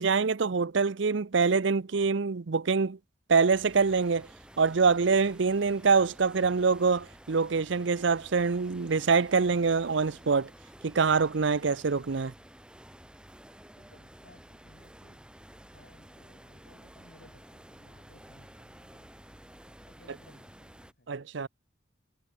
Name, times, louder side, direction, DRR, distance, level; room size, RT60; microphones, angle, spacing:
voice 1, 0.0-3.0 3.3-4.3 4.6-10.5 10.8-12.3 21.1-21.5, right 5 dB, 65° right, 0.6 m, -25 dB
sound 1, 3.5-20.9, equal, 5° right, 4.3 m, -52 dB
voice 2, 13.8-15.3 15.7-19.1 19.9-21.1, left 1 dB, 55° left, 6.8 m, -60 dB
head